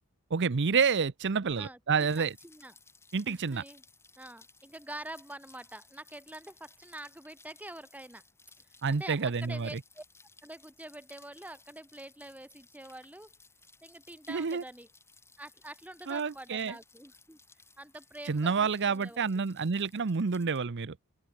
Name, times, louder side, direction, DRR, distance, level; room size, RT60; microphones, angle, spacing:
voice 1, 0.3-2.3 3.1-3.6 8.8-9.8 14.3-14.6 16.1-16.7 18.2-21.0, right 5 dB, 55° right, 0.7 m, -29 dB
voice 2, 1.6-2.7 3.3-3.8 4.2-8.2 8.9-10.0 10.4-13.3 13.8-14.9 15.4-17.4 17.8-19.2, right 1 dB, 5° right, 3.2 m, -46 dB
Rain, 2.0-20.6, left 3 dB, 10° left, 4.3 m, -60 dB
open air
head